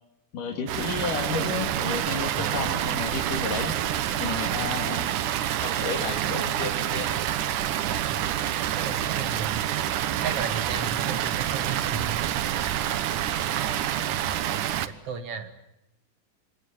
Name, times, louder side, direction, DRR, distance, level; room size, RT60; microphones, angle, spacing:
voice 1, 0.3-3.8 4.2-5.1 5.6-7.1, left 4 dB, 75° left, 2 dB, 4.1 m, -32 dB
Water, 0.7-14.9, right 11 dB, 75° right, 2.6 m, -27 dB
voice 2, 2.4-2.8 4.6-4.8 8.1-8.5 8.8-9.6 10.2-12.5 14.8-15.5, right 6 dB, 50° right, 8 dB, 3.1 m, -35 dB
27.0 x 25.0 x 7.5 m, 0.85 s
omnidirectional pair, 3.8 m